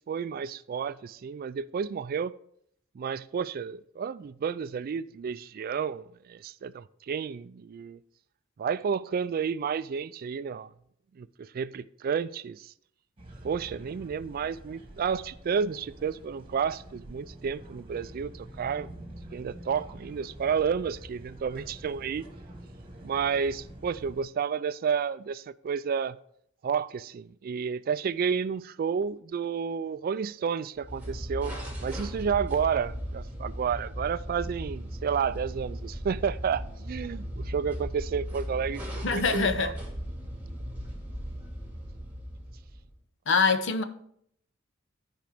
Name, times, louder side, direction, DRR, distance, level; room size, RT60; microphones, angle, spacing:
voice 1, 0.1-2.3 3.0-8.0 8.6-10.7 11.2-12.7 13.4-18.9 19.3-22.3 23.0-26.2 26.6-39.7, right 6 dB, 45° right, 0.3 m, -31 dB
sound 1, 13.2-24.2, right 1 dB, 30° right, 1.5 m, -47 dB
sound 2, 30.8-43.0, equal, 10° right, 2.1 m, -37 dB
voice 2, 39.0-39.7 43.3-43.8, left 4 dB, 65° left, 0.8 m, -24 dB
13.0 x 5.1 x 3.5 m
head